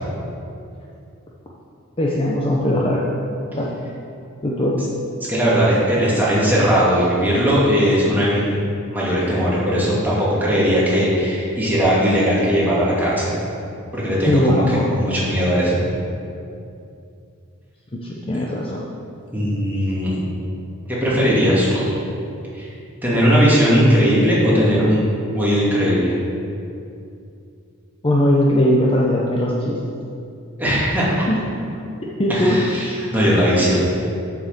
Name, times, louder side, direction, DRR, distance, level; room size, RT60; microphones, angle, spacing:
voice 1, 2.0-3.1 3.5-3.7 4.4-4.9 14.3-14.8 17.9-18.8 28.0-29.8 31.3-31.4 32.2-32.6, left 1 dB, 25° left, -3 dB, 0.8 m, -19 dB
voice 2, 5.3-8.4 8.9-13.4 13.9-14.6 14.9-15.7 19.3-20.1 20.9-21.9 22.5-22.7 23.0-25.0 25.3-26.1 30.6-31.3 32.3-33.8, equal, 10° right, -8 dB, 2.5 m, -18 dB
7.8 x 6.0 x 6.9 m, 2.6 s
head